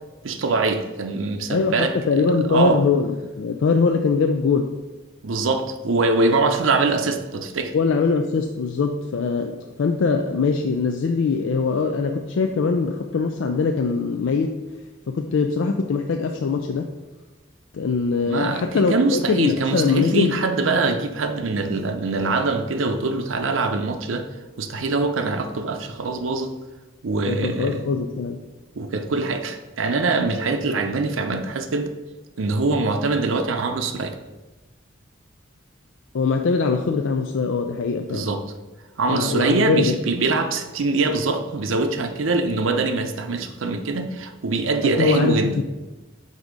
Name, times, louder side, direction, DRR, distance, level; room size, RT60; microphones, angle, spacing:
voice 1, 0.2-1.9 2.5-2.8 5.2-7.7 18.3-24.3 24.6-26.5 27.0-27.9 28.8-31.9 32.4-34.2 38.1-38.4 39.0-45.5, right 3 dB, 80° right, 7 dB, 0.6 m, -23 dB
voice 2, 1.5-4.7 7.7-14.6 15.1-16.9 17.7-20.3 27.2-28.4 36.1-38.3 39.1-40.0 44.8-45.6, left 4 dB, 75° left, 4 dB, 0.4 m, -22 dB
7.9 x 2.7 x 5.1 m, 1.1 s
head